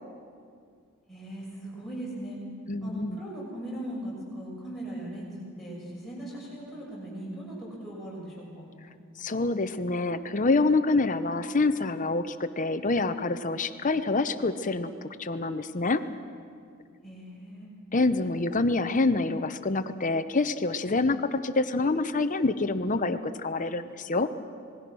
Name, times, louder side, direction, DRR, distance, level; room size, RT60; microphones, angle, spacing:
voice 1, 1.1-2.4 2.8-8.7 17.0-17.7, right 1 dB, ahead, -7 dB, 6.9 m, -39 dB
voice 2, 2.7-3.2 9.2-14.9 15.2-16.0 17.9-24.3, left 3 dB, 35° left, 11 dB, 0.8 m, -26 dB
27.0 x 20.5 x 6.2 m, 2.3 s
head